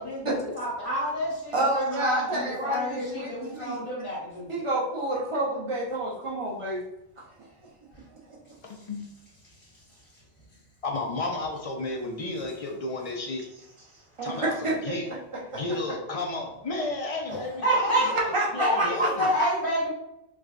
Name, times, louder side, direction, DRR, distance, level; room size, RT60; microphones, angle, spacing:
voice 1, 0.0-4.5 17.3-18.2 18.6-19.9, equal, 70° left, -6 dB, 1.5 m, -29 dB
voice 2, 1.5-3.8 4.5-6.8 14.2-16.0 18.3-19.3, right 1 dB, 35° right, -3 dB, 0.7 m, -29 dB
voice 3, 10.8-13.4 14.2-15.1 15.5-19.2, left 2 dB, 45° left, 1 dB, 0.5 m, -32 dB
4.7 x 2.3 x 2.4 m, 0.86 s
omnidirectional pair, 1.1 m